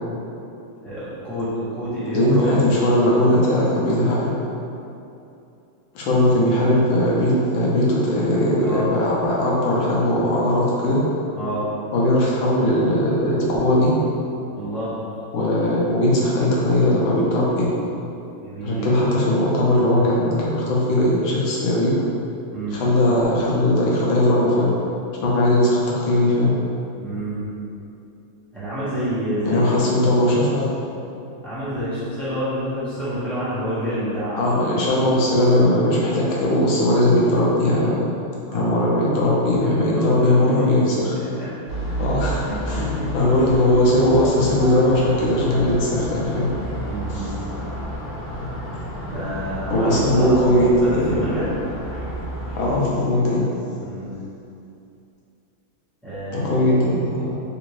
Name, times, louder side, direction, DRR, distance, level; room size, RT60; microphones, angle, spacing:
voice 1, 0.8-2.6 8.6-8.9 11.3-11.7 14.5-14.9 18.4-18.9 22.5-22.8 27.0-27.5 28.5-30.2 31.4-34.8 38.4-38.9 39.5-40.7 41.3-41.5 41.8-41.9 42.5-43.2 46.9-47.3 48.8-51.5 53.8-54.1 56.0-56.7, equal, ahead, -14 dB, 0.7 m, -29 dB
voice 2, 2.1-4.3 5.9-11.0 11.9-13.9 15.3-17.7 18.6-21.9 22.7-24.7 25.2-26.5 29.4-30.8 34.4-38.0 38.5-41.1 42.0-42.4 42.7-42.8 43.1-46.5 47.1-47.2 49.7-51.3 52.6-53.5 56.3-57.3, left 1 dB, 80° left, -5 dB, 1.5 m, -19 dB
sound 1, 41.7-52.8, right 1 dB, 45° left, 1.5 m, -31 dB
3.8 x 2.6 x 3.0 m, 2.7 s
omnidirectional pair, 2.2 m